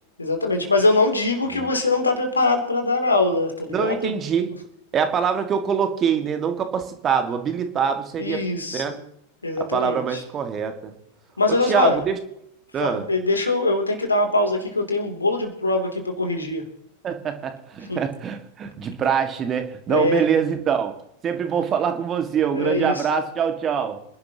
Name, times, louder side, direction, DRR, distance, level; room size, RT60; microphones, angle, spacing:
voice 1, 0.2-4.1 8.2-9.0 9.4-10.2 11.4-12.0 12.8-16.7 17.9-18.0 19.9-20.2 22.5-23.0, left 2 dB, 80° left, 4 dB, 3.0 m, -22 dB
voice 2, 3.7-4.5 4.9-8.4 8.7-9.0 9.6-10.9 11.6-12.2 12.7-13.1 17.0-20.9 21.2-24.0, right 7 dB, 25° right, 6 dB, 1.9 m, -24 dB
27.0 x 11.5 x 3.0 m, 0.74 s
figure-of-eight pair, 90°, 0 cm